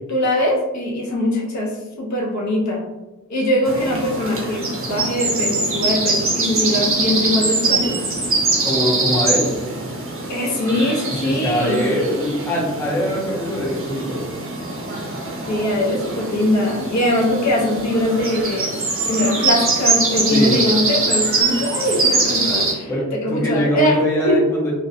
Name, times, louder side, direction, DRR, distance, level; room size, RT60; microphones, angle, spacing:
voice 1, 0.1-2.8 3.3-7.9 10.3-11.8 15.5-18.8 19.1-24.0 24.2-24.4, left 1 dB, 65° left, -2 dB, 0.6 m, -21 dB
sound 1, 3.7-22.7, right 3 dB, 45° right, 0.5 m, -23 dB
voice 2, 8.6-9.5 11.0-14.2 20.3-20.5 22.9-24.7, equal, 10° left, -4 dB, 0.4 m, -22 dB
2.4 x 2.1 x 2.6 m, 1.1 s
wide cardioid pair, 170°, 31 cm